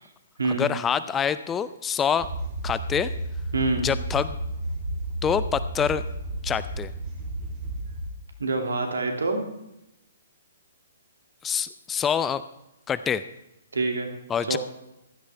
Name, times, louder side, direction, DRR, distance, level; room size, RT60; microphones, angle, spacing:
voice 1, 0.5-2.3 2.6-3.1 3.8-4.4 5.2-6.0 6.4-6.9 11.4-12.4 12.9-13.2 14.3-14.6, left 7 dB, 15° left, 14 dB, 0.5 m, -26 dB
sound 1, 2.2-8.1, right 1 dB, 30° right, 2.5 m, -32 dB
voice 2, 3.5-3.9 8.4-9.5 13.7-14.1 14.5-14.6, right 3 dB, 70° right, 3 dB, 2.4 m, -26 dB
15.5 x 12.5 x 3.4 m, 0.89 s
figure-of-eight pair, 125°, 0 cm